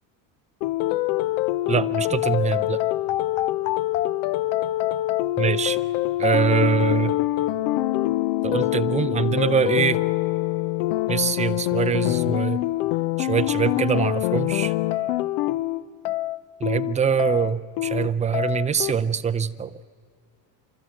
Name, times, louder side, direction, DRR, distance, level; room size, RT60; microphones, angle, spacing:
sound 1, 0.6-18.9, left 16 dB, 85° left, 0.8 m, -25 dB
voice 1, 1.7-2.8 5.4-5.8 6.2-7.1 8.4-10.0 11.1-12.6 13.2-14.7 16.6-19.8, right 7 dB, 15° right, 11 dB, 0.5 m, -23 dB
29.0 x 13.0 x 7.8 m, 2.1 s
cardioid pair, 120°, 47 cm